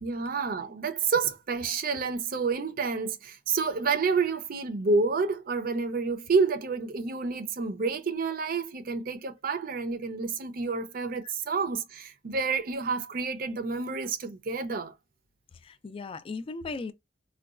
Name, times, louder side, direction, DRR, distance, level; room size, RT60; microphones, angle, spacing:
voice 1, 0.0-14.9, right 4 dB, 50° right, 0.5 m, -29 dB
voice 2, 15.6-16.9, left 3 dB, 30° left, 0.3 m, -37 dB
3.8 x 2.2 x 2.3 m
head